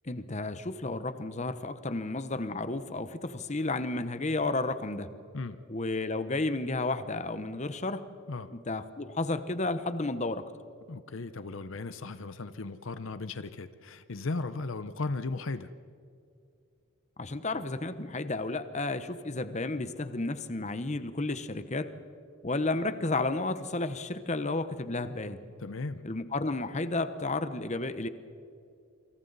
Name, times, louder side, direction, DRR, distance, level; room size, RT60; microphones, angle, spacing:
voice 1, 0.0-5.1 5.7-8.0 8.5-10.4 17.2-21.9 22.4-25.4 26.0-28.1, left 2 dB, 30° left, 11 dB, 1.0 m, -32 dB
voice 2, 10.9-15.7 25.6-26.0, left 3 dB, 60° left, 12 dB, 0.7 m, -36 dB
27.5 x 26.5 x 4.1 m, 2.5 s
head